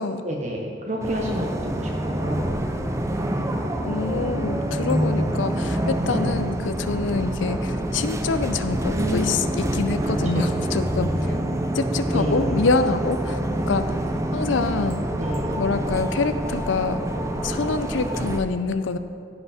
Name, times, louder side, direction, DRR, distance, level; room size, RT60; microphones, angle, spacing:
voice 1, 0.2-2.6 8.9-9.4 10.2-10.4 12.1-12.5 15.1-15.5, equal, 40° right, -1 dB, 0.9 m, -28 dB
sound 1, 1.0-18.4, right 1 dB, 15° right, 0.5 m, -26 dB
voice 2, 3.8-11.4 11.7-13.4 13.7-14.0 14.3-15.1 15.6-17.0 17.4-19.0, left 4 dB, 75° left, 10 dB, 0.5 m, -26 dB
15.5 x 5.8 x 4.2 m, 2.4 s
head